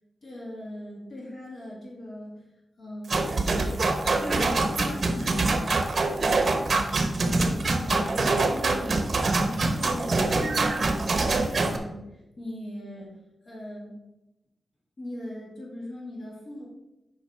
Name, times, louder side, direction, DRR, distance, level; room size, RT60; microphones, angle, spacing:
voice 1, 0.2-2.4 2.8-3.4 4.2-5.8 6.2-6.7 7.3-9.1 9.4-12.0 12.4-13.1 13.5-14.0 15.0-16.7, left 1 dB, 55° left, -3 dB, 2.1 m, -39 dB
sound 1, 3.1-11.8, right 3 dB, 45° right, 1.0 m, -24 dB
7.4 x 5.5 x 4.6 m, 0.93 s
wide cardioid pair, 145°, 0 cm